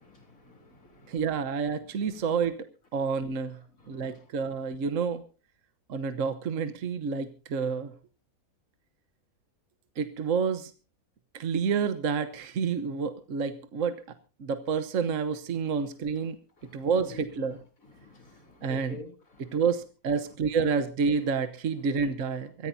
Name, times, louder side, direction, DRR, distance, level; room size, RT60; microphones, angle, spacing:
voice 1, 0.0-1.2 2.1-2.3 3.8-4.5 15.6-15.8 16.2-16.3 16.6-17.2 17.8-19.6, left 3 dB, 65° left, 5 dB, 3.8 m, -50 dB
voice 2, 1.1-2.7 2.9-3.6 3.9-5.2 5.9-7.9 10.0-10.7 11.3-14.0 14.4-16.4 16.7-17.6 18.6-19.0 19.5-22.7, right 5 dB, 60° right, 10 dB, 1.4 m, -29 dB
24.5 x 15.0 x 2.7 m, 0.35 s
omnidirectional pair, 1.6 m